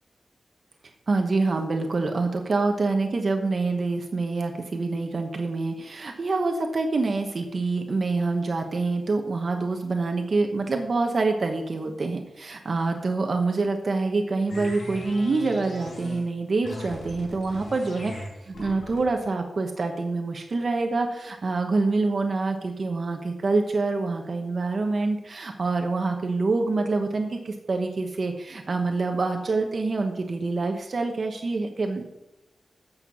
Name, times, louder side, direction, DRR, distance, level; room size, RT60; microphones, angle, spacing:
voice 1, 1.1-32.0, right 3 dB, 50° right, 4 dB, 1.0 m, -26 dB
sound 1, 14.5-16.3 16.6-19.2, left 1 dB, 85° left, 4.2 m, -39 dB
8.6 x 6.7 x 6.9 m, 0.97 s
wide cardioid pair, 130°, 0 cm